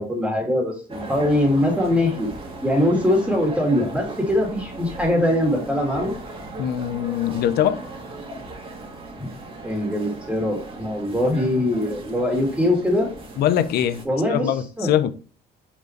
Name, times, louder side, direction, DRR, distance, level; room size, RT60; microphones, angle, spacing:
voice 1, 0.0-2.3 2.6-6.1 9.2-9.3 9.6-13.1 14.1-14.5 14.8-15.1, left 1 dB, 5° right, 2.2 m, -22 dB
sound 1, 0.9-14.0, right 2 dB, 30° right, 1.9 m, -37 dB
voice 2, 6.6-7.8 13.4-15.1, left 10 dB, 70° left, 0.7 m, -22 dB
5.6 x 4.6 x 4.5 m
cardioid pair, 110°, 17 cm